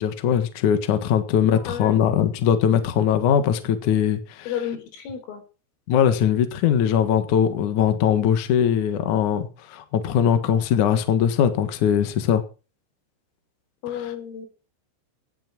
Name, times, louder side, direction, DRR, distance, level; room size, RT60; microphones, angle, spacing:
voice 1, 0.0-4.5 5.9-12.4, left 9 dB, 60° left, 9 dB, 2.1 m, -21 dB
voice 2, 1.5-2.0 4.5-5.4 13.8-14.5, left 9 dB, 80° left, 6 dB, 6.4 m, -32 dB
17.5 x 8.8 x 6.0 m, 0.35 s
omnidirectional pair, 5.8 m